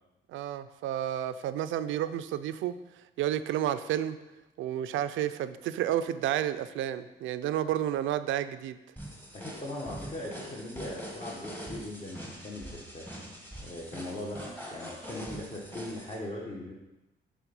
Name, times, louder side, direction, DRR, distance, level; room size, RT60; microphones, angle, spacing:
voice 1, 0.3-2.7 3.2-4.2 4.6-8.8, right 11 dB, 80° right, 12 dB, 0.4 m, -31 dB
sound 1, 9.0-16.2, equal, 10° left, 1.4 m, -43 dB
voice 2, 9.3-13.1 13.6-14.4 14.7-16.7, left 1 dB, 30° left, -4 dB, 1.2 m, -39 dB
7.3 x 3.5 x 5.3 m, 1.0 s
cardioid pair, 90°, 20 cm